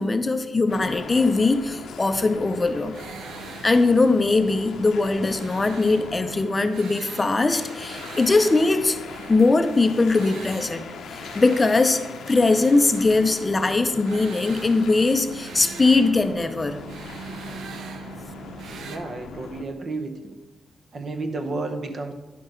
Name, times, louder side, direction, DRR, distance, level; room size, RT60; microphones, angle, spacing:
voice 1, 0.0-2.9 3.6-9.0 9.3-10.9 11.1-12.0 12.3-16.8, left 3 dB, 25° left, 8 dB, 0.5 m, -21 dB
sound 1, 0.7-19.6, left 5 dB, 80° left, 0.7 m, -41 dB
sound 2, 2.0-19.0, right 5 dB, 80° right, 0.7 m, -42 dB
voice 2, 18.8-20.4 20.9-22.1, right 3 dB, 45° right, 6 dB, 0.8 m, -31 dB
10.0 x 6.2 x 3.8 m, 1.2 s
cardioid pair, 110°, 0 cm